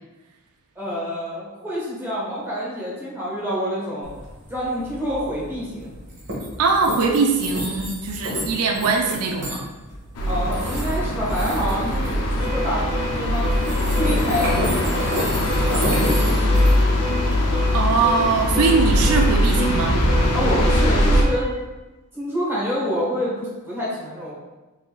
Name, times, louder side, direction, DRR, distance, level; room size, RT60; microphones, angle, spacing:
voice 1, 0.7-4.1 4.5-5.9 10.2-12.8 13.2-16.2 20.3-21.5 22.1-24.3, equal, 10° right, -7 dB, 1.4 m, -27 dB
sound 1, 4.0-20.4, equal, 60° right, 1.3 m, -32 dB
voice 2, 6.6-9.7 17.7-20.0, right 4 dB, 85° right, 2 dB, 0.5 m, -21 dB
sound 2, 10.2-21.2, left 1 dB, 90° left, 0.6 m, -21 dB
Alarm, 12.4-21.6, equal, 30° right, 0.6 m, -33 dB
4.2 x 3.6 x 2.4 m, 1.1 s
head